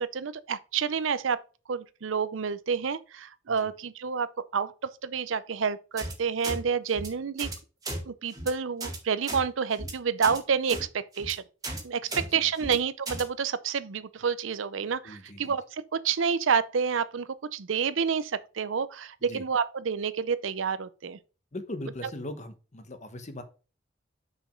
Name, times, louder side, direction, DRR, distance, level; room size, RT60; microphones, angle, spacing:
voice 1, 0.0-1.4 1.7-7.5 8.1-11.4 11.8-21.2, right 6 dB, 80° right, 0.6 m, -29 dB
sound 1, 6.0-6.1 6.4-6.6 6.9-7.1 7.4-7.6 7.8-8.0 8.3-8.5 8.8-9.0 9.2-9.4 9.7-9.9 10.2-10.4 10.7-10.8 11.1-11.3 11.6-11.8 12.1-12.2 12.6-12.7 13.1-13.2, right 2 dB, 20° right, 2.0 m, -35 dB
voice 2, 12.1-12.7 15.0-15.5 19.3-19.4 21.5-23.4, left 1 dB, 40° left, 1.1 m, -40 dB
6.2 x 5.2 x 5.0 m
head